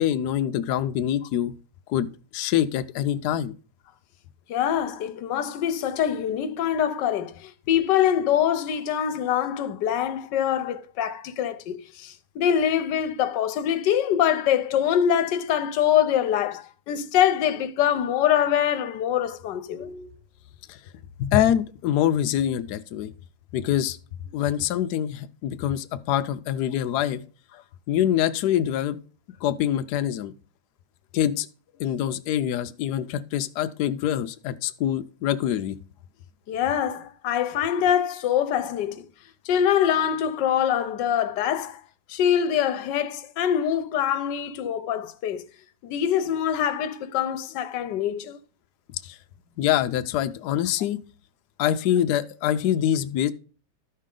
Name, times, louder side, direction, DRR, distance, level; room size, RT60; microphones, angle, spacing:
voice 1, 0.0-1.5 1.9-2.1 2.3-3.5 20.7-20.8 21.2-23.1 23.5-24.0 24.3-27.2 27.9-29.0 29.4-30.3 31.1-31.5 31.8-35.8 49.0-49.2 49.6-51.0 51.6-53.3, left 11 dB, 85° left, 0.9 m, -25 dB
voice 2, 4.5-20.1 36.5-39.0 39.5-41.8 42.1-45.4 45.8-48.4, left 9 dB, 70° left, 1.1 m, -24 dB
13.0 x 5.5 x 3.7 m
omnidirectional pair, 2.4 m